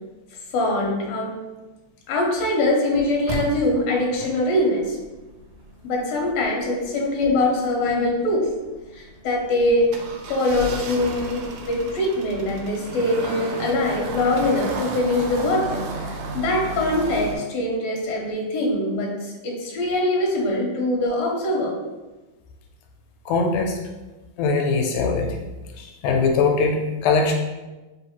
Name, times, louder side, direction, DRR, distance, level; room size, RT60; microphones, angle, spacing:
voice 1, 0.5-1.4 2.1-5.0 5.8-8.5 8.9-9.9 10.3-21.7, left 1 dB, 70° left, -2 dB, 1.8 m, -23 dB
sound 1, 3.3-17.4, right 2 dB, 90° right, 1.4 m, -34 dB
voice 2, 23.3-23.8 24.4-25.4 25.8-27.3, left 4 dB, 85° left, 2 dB, 2.0 m, -21 dB
4.3 x 3.2 x 2.8 m, 1.2 s
omnidirectional pair, 3.5 m